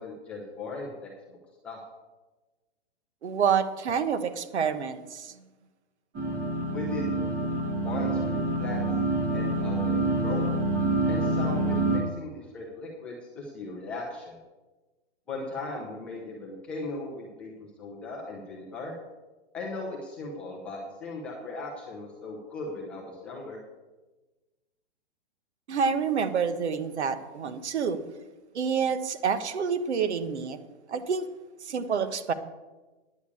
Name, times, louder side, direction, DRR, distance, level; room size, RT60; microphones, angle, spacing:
voice 1, 0.0-1.4 1.6-1.8 6.7-7.3 7.8-8.9 9.3-10.5 11.1-14.4 15.3-18.9 19.5-23.6, left 3 dB, 5° left, -4 dB, 0.4 m, -38 dB
voice 2, 3.2-5.3 25.7-28.0 28.5-30.6 30.9-31.3 31.6-32.3, right 6 dB, 85° right, 11 dB, 1.2 m, -28 dB
sound 1, 6.1-12.0, right 2 dB, 15° right, 1.3 m, -27 dB
9.7 x 6.4 x 8.4 m, 1.2 s
hypercardioid pair, 170°, 33 cm